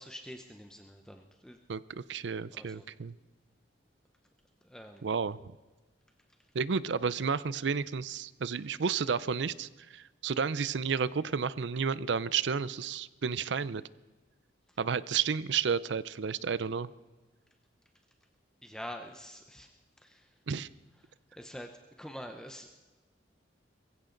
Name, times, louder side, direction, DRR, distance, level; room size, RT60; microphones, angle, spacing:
voice 1, 0.0-1.6 2.5-2.9 4.6-5.1 14.7-14.8 18.6-19.7 20.0-20.3 21.0-21.7 22.0-22.8, equal, 5° left, 5 dB, 0.7 m, -46 dB
voice 2, 1.7-3.1 5.0-5.4 6.5-13.8 14.8-16.9 20.5-20.7, right 6 dB, 75° right, 18 dB, 0.5 m, -31 dB
22.0 x 15.5 x 3.9 m, 1.2 s
head